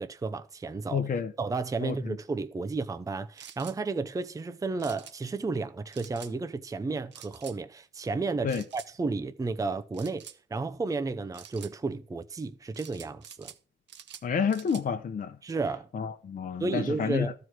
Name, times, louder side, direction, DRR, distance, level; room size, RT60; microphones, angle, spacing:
voice 1, 0.0-1.0 1.4-10.2 10.5-13.5 15.4-15.9 16.6-17.3, right 3 dB, 15° right, 0.6 m, -32 dB
voice 2, 0.9-1.3 1.8-2.2 8.4-8.6 14.2-15.4 15.9-17.3, left 6 dB, 45° left, 0.9 m, -29 dB
sound 1, 3.4-3.8 4.8-5.2 5.9-6.3 7.1-7.6 8.5-8.9 9.9-10.4 11.3-11.7 12.7-13.6 13.9-14.9, right 9 dB, 65° right, 1.0 m, -47 dB
12.5 x 4.8 x 6.1 m
cardioid pair, 90°, 20 cm